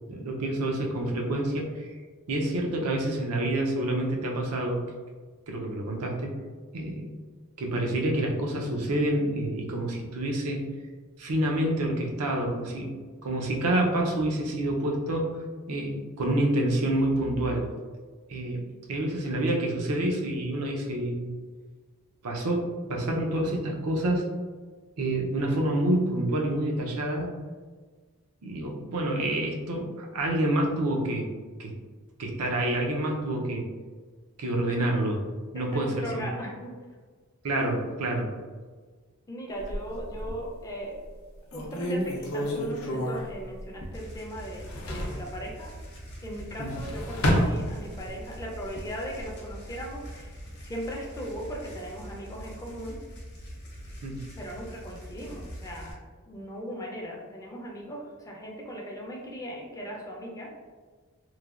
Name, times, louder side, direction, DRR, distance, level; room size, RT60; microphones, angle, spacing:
voice 1, 0.1-1.9 2.3-4.8 5.5-6.4 6.7-7.1 7.6-10.7 11.2-12.9 13.2-15.3 15.7-17.7 18.3-21.3 22.2-24.3 25.0-27.3 28.4-31.3 31.6-31.7 32.2-33.7 34.4-35.2 35.5-36.2 37.4-38.3 46.6-46.7 54.0-54.2, right 1 dB, 85° right, 0 dB, 0.5 m, -28 dB
voice 2, 35.5-36.7 39.3-41.0 41.5-45.7 46.2-53.0 54.4-56.0 56.3-60.5, equal, 15° left, -2 dB, 0.4 m, -38 dB
sound 1, 39.6-40.5 41.1-41.2 41.5-44.2 44.4-45.3 46.4-48.2 48.6-49.3, equal, 75° left, 0.5 m, -30 dB
sound 2, 43.9-55.9, equal, 50° left, 0.9 m, -43 dB
3.1 x 2.2 x 2.3 m, 1.4 s
head